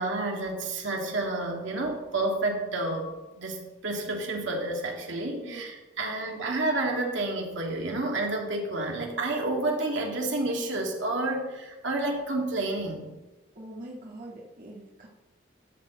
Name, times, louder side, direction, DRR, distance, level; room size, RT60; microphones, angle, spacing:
voice 1, 0.0-13.1, right 2 dB, 70° right, 0 dB, 2.0 m, -30 dB
voice 2, 13.6-15.1, right 1 dB, 45° right, -4 dB, 1.7 m, -43 dB
13.0 x 4.4 x 6.9 m, 1.1 s
head